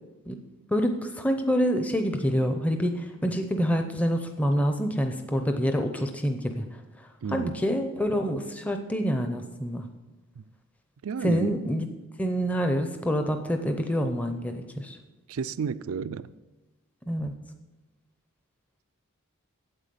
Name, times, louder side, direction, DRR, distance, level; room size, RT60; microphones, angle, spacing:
voice 1, 0.7-6.7 7.3-9.8 11.2-11.9 12.2-15.0 17.1-17.3, equal, 5° left, 0.6 m, -27 dB
voice 2, 7.2-7.6 11.0-11.6 15.3-16.3, right 6 dB, 70° right, 0.4 m, -31 dB
8.9 x 8.0 x 6.9 m
head